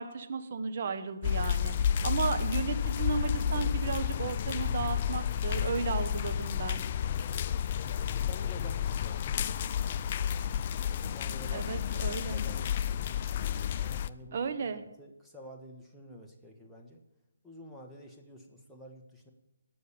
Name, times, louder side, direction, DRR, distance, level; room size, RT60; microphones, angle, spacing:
voice 1, 0.0-6.8 11.5-12.4 14.3-14.8, right 5 dB, 45° right, 8 dB, 1.3 m, -34 dB
sound 1, 1.2-14.1, left 9 dB, 35° left, 0.5 m, -31 dB
voice 2, 7.9-9.4 10.9-11.7 11.9-13.2 13.7-17.0 17.4-19.3, equal, ahead, -3 dB, 1.4 m, -50 dB
17.5 x 6.2 x 8.8 m, 0.94 s
hypercardioid pair, 155°, 0 cm